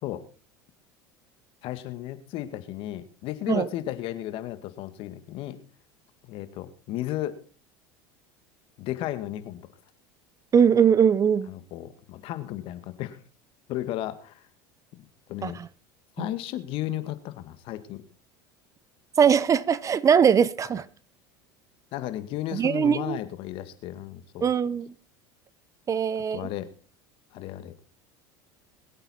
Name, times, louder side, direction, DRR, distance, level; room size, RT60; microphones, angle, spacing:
voice 1, 1.6-5.6 6.3-7.4 8.8-9.6 11.5-13.2 13.7-14.4 15.3-15.6 16.2-18.0 21.9-24.5 26.3-26.7 27.3-27.7, left 13 dB, 60° left, 1.9 m, -34 dB
voice 2, 10.5-11.5 15.4-15.7 16.2-16.3 19.2-20.9 22.5-23.2 24.4-24.9 25.9-26.5, right 7 dB, 30° right, 0.8 m, -21 dB
22.0 x 8.9 x 4.4 m
hypercardioid pair, 90°, 11 cm